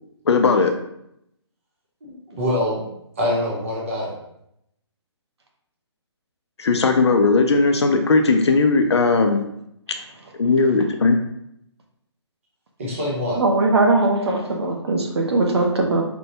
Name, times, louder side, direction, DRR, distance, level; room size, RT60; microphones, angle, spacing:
voice 1, 0.3-0.7 6.6-9.4 10.4-11.2, left 3 dB, 65° left, 6 dB, 0.4 m, -17 dB
voice 2, 2.0-2.8 3.2-4.1 12.8-13.4, left 1 dB, 30° right, -5 dB, 0.8 m, -24 dB
voice 3, 13.4-16.0, right 2 dB, 60° right, 1 dB, 0.7 m, -20 dB
4.4 x 2.1 x 2.7 m, 0.78 s
hypercardioid pair, 180°, 15 cm